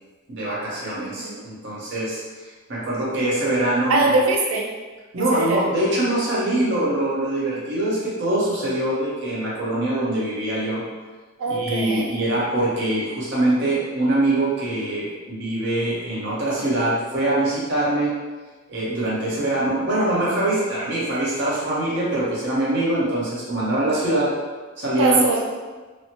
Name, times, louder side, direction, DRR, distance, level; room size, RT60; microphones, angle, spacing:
voice 1, 0.3-4.1 5.1-10.8 11.5-18.1 18.7-24.3 24.8-25.2, right 1 dB, 60° right, -7 dB, 0.9 m, -23 dB
voice 2, 1.0-1.4 3.9-4.7 5.2-5.6 11.4-12.1 25.0-25.4, right 3 dB, 85° right, 0 dB, 0.5 m, -22 dB
3.1 x 2.0 x 2.8 m, 1.3 s
head